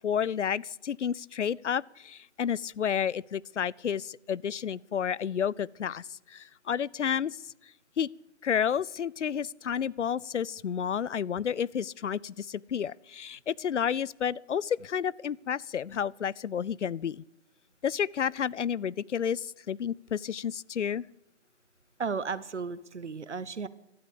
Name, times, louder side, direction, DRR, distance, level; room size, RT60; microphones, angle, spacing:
voice 1, 0.0-7.4 8.0-8.1 8.4-17.2 17.8-21.0, left 8 dB, 80° left, 24 dB, 0.5 m, -31 dB
voice 2, 22.0-23.7, right 5 dB, 75° right, 16 dB, 1.1 m, -34 dB
15.5 x 12.5 x 6.8 m, 0.90 s
figure-of-eight pair, 165°, 35 cm